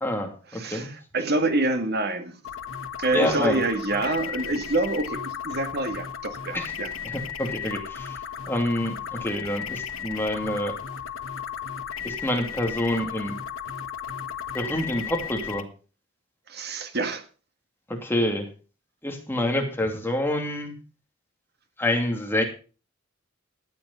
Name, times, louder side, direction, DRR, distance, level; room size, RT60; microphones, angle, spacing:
voice 1, 0.0-0.9 3.1-3.6 6.5-6.7 7.0-8.2 8.5-10.8 12.0-13.3 14.5-15.6 17.9-18.5 19.0-20.7 21.8-22.4, left 1 dB, 10° left, 2.5 m, -27 dB
voice 2, 0.5-2.4 3.0-6.9 16.5-17.2, right 2 dB, 50° right, 2.0 m, -27 dB
sound 1, 2.4-15.6, left 8 dB, 90° left, 1.4 m, -35 dB
13.5 x 8.7 x 5.6 m
head